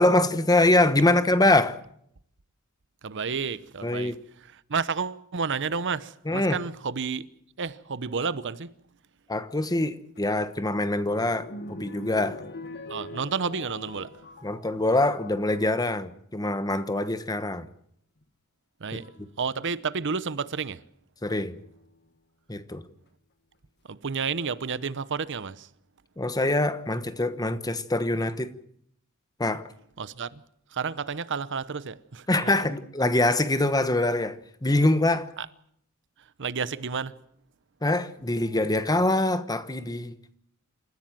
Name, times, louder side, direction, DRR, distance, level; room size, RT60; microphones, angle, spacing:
voice 1, 0.0-1.8 3.8-4.1 6.3-6.6 9.3-12.4 14.4-17.7 21.2-21.6 22.5-22.8 26.2-28.5 29.4-29.7 32.3-35.3 37.8-40.1, left 2 dB, 15° left, 1.2 m, -24 dB
voice 2, 3.0-7.3 7.6-8.7 12.9-14.2 18.8-19.1 19.4-20.8 23.9-25.7 30.0-30.4 30.7-32.5 35.4-35.5 36.2-37.1, right 5 dB, 55° right, 0.9 m, -31 dB
sound 1, 10.2-15.8 16.5-17.0 18.2-18.3 19.0-19.3 21.4-22.1 22.7-22.8 23.1-23.2, left 1 dB, 50° left, 1.9 m, -43 dB
28.0 x 15.0 x 7.6 m
head